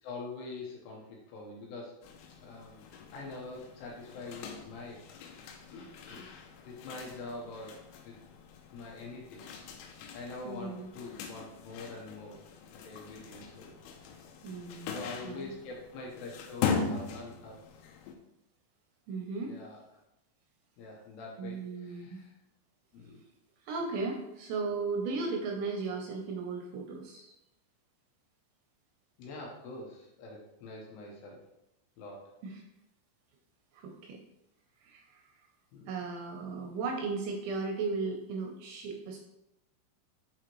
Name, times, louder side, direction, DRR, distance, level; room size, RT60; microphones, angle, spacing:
voice 1, 0.0-1.9 2.4-5.0 5.7-7.8 8.0-8.1 8.7-9.4 9.9-12.4 12.8-13.8 14.9-17.6 19.4-20.0 20.8-22.4 22.9-23.2 29.2-31.4 32.0-32.2 35.7-36.0, left 3 dB, 75° left, -2 dB, 2.8 m, -44 dB
sound 1, 2.0-18.1, left 6 dB, 90° left, 3.3 m, -40 dB
voice 2, 10.4-10.9 14.4-15.0 15.2-15.5 19.1-19.6 21.4-22.2 23.7-27.3 32.4-32.6 33.7-34.2 34.8-35.2 35.9-39.3, right 4 dB, 80° right, 2 dB, 2.7 m, -36 dB
8.5 x 4.8 x 3.0 m, 0.86 s
omnidirectional pair, 5.6 m